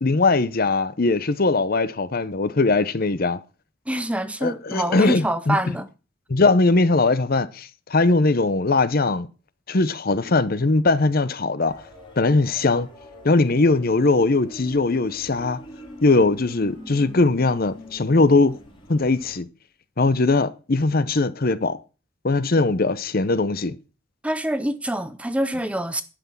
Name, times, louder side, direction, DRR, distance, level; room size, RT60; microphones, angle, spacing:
voice 1, 0.0-3.4 4.4-5.6 6.3-9.3 9.7-11.8 12.2-12.9 13.2-15.6 16.0-18.6 18.9-19.5 20.0-21.8 22.2-23.8, left 3 dB, 45° left, 0.7 m, -20 dB
voice 2, 3.9-5.9 24.2-26.0, right 1 dB, 5° right, 0.5 m, -25 dB
sound 1, 11.7-19.4, equal, 25° left, 3.8 m, -43 dB
11.5 x 5.9 x 7.2 m
head